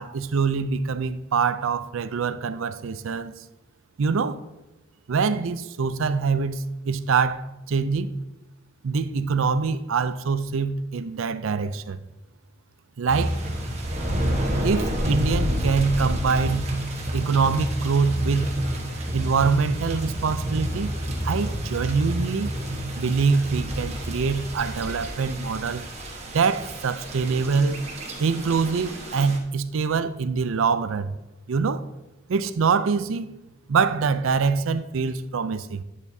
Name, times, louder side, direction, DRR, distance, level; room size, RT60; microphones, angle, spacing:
voice 1, 0.0-3.3 4.0-4.4 5.1-8.2 8.8-12.0 13.0-13.4 14.6-16.6 17.1-18.5 19.1-20.9 21.2-22.5 23.0-25.8 26.3-27.8 28.2-31.1 31.5-31.8 32.3-33.3 33.7-35.8, right 5 dB, 70° right, 0.4 m, -24 dB
sound 1, 13.1-29.4, equal, 30° right, 1.2 m, -29 dB
10.0 x 7.3 x 2.7 m
head